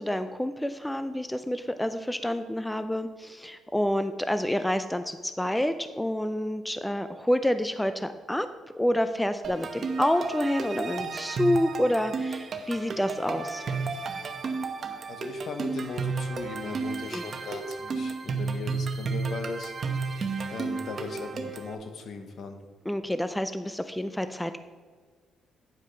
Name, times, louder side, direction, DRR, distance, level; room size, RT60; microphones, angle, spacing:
voice 1, 0.0-8.5 8.7-13.6 17.1-17.2 22.9-24.6, left 1 dB, 5° left, 10 dB, 0.4 m, -28 dB
sound 1, 9.4-21.7, right 4 dB, 50° right, 1.0 m, -32 dB
voice 2, 15.1-19.7 20.5-22.6, left 4 dB, 60° left, 6 dB, 1.1 m, -38 dB
9.4 x 4.9 x 5.6 m, 1.5 s
cardioid pair, 90°, 0 cm